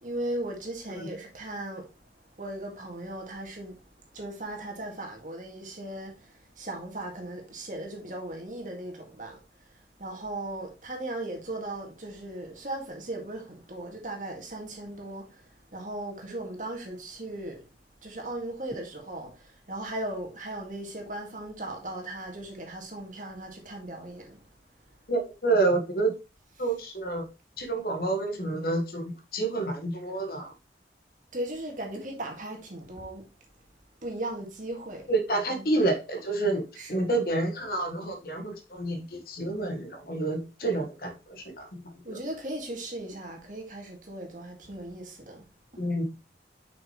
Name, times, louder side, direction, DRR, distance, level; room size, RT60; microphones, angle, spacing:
voice 1, 0.0-1.9 2.4-3.8 4.1-9.4 10.0-17.7 18.0-24.4 26.6-26.8 31.3-33.2 34.0-35.8 36.7-37.1 40.6-40.8 42.0-45.4 45.7-45.8, right 1 dB, 45° right, 1.9 m, -37 dB
voice 2, 25.1-26.2 26.6-27.3 27.6-30.5 35.1-42.2 45.8-46.1, right 2 dB, 55° left, 1.4 m, -29 dB
6.1 x 6.0 x 3.1 m
head